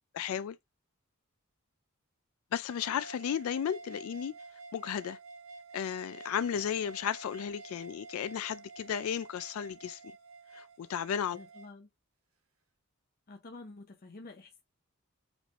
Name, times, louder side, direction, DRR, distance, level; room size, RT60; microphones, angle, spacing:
voice 1, 0.1-0.6 2.5-4.4 4.7-5.2 5.7-10.1 10.5-11.4, left 8 dB, 75° left, 0.3 m, -34 dB
sound 1, 2.7-11.7, right 3 dB, 75° right, 1.1 m, -50 dB
voice 2, 11.3-11.9 13.3-14.6, left 3 dB, 45° left, 0.7 m, -49 dB
5.1 x 3.2 x 2.4 m
head